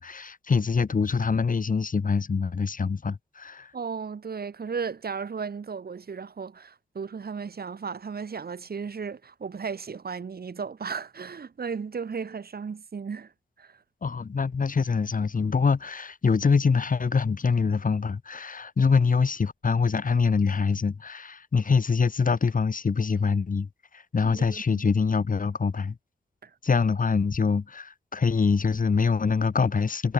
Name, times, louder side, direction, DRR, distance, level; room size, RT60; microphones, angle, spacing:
voice 1, 0.0-3.7 14.0-23.7 23.9-26.0 26.6-30.1, left 5 dB, 45° left, 2.8 m, -24 dB
voice 2, 3.7-13.3 13.6-13.8 24.2-24.8 26.4-26.5, right 5 dB, 55° right, 4.5 m, -35 dB
wide cardioid pair, 125°, 19 cm